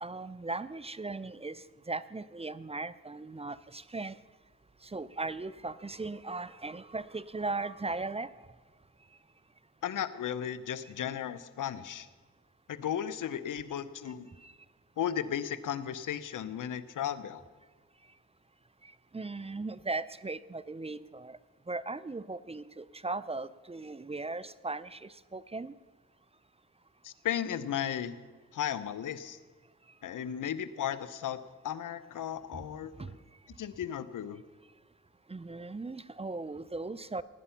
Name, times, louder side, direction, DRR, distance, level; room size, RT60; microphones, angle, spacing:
voice 1, 0.0-4.1 4.9-8.3 14.4-14.5 19.1-21.4 21.7-25.7 33.0-33.1 35.3-37.2, right 3 dB, 20° right, 16 dB, 0.5 m, -38 dB
voice 2, 9.8-12.1 12.7-14.3 15.0-17.4 27.0-28.2 28.5-29.4 30.0-31.4 31.6-33.1 33.6-34.4, left 9 dB, 85° left, 14 dB, 0.7 m, -35 dB
17.0 x 9.9 x 5.7 m, 1.4 s
cardioid pair, 65°, 31 cm